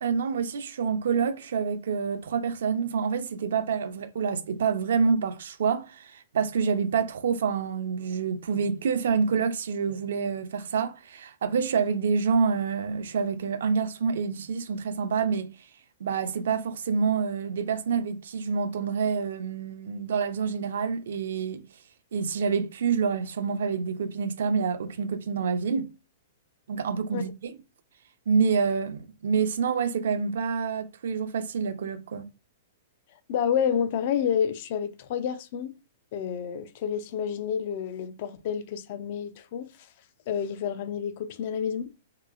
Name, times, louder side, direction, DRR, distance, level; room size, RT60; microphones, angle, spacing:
voice 1, 0.0-15.5 16.0-21.6 22.1-25.9 26.7-27.5 28.3-32.3, right 6 dB, 75° right, 0.5 m, -27 dB
voice 2, 33.3-35.7 36.1-39.7 40.3-41.9, left 8 dB, 50° left, 0.5 m, -29 dB
3.0 x 2.9 x 2.4 m
hypercardioid pair, 145°, 0 cm